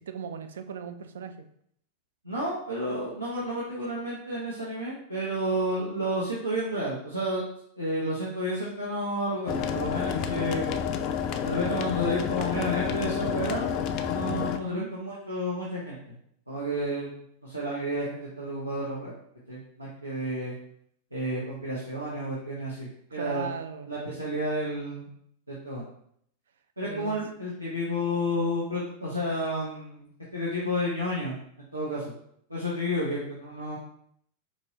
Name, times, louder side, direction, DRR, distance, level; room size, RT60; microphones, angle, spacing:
voice 1, 0.0-1.4 14.7-14.9 23.1-23.9 26.8-27.2, right 6 dB, 65° right, 8 dB, 0.3 m, -37 dB
voice 2, 2.2-7.4 7.8-10.8 11.4-13.8 14.0-16.0 16.5-19.1 19.5-20.5 21.1-23.4 23.9-25.1 25.5-25.8 26.8-31.4 31.7-32.2 32.5-33.8, equal, 85° right, -6 dB, 0.8 m, -31 dB
sound 1, 9.5-14.6, left 8 dB, 40° left, 0.3 m, -29 dB
4.5 x 2.7 x 2.9 m, 0.68 s
figure-of-eight pair, 90°, 0 cm